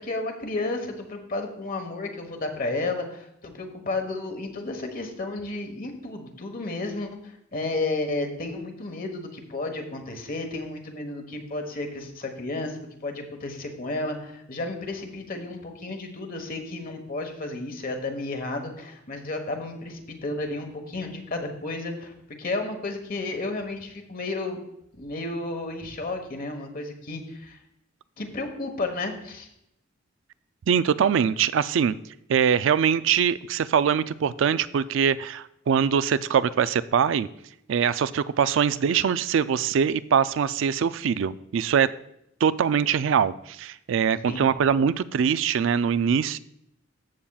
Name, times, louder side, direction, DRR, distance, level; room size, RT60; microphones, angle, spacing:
voice 1, 0.0-22.1 22.4-24.6 24.9-27.6 28.2-29.5 44.3-44.5, left 2 dB, 45° left, 5 dB, 1.3 m, -32 dB
voice 2, 30.7-31.9 32.3-37.3 37.7-41.9 42.4-46.4, right 7 dB, 65° right, 15 dB, 0.3 m, -23 dB
14.0 x 7.2 x 2.4 m, 0.80 s
head